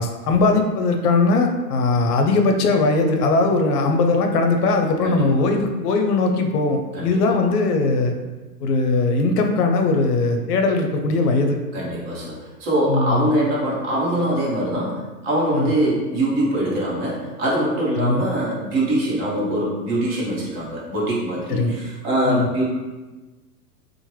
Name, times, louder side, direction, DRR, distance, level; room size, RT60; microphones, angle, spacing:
voice 1, 0.0-8.1 8.6-11.6 12.9-13.3 15.5-15.7 18.0-18.2 21.5-21.7 22.3-22.5, left 3 dB, 70° left, 4 dB, 0.6 m, -20 dB
voice 2, 5.0-5.4 6.9-7.2 11.7-22.6, right 1 dB, 40° right, -5 dB, 0.9 m, -23 dB
2.9 x 2.1 x 3.1 m, 1.2 s
hypercardioid pair, 145°, 48 cm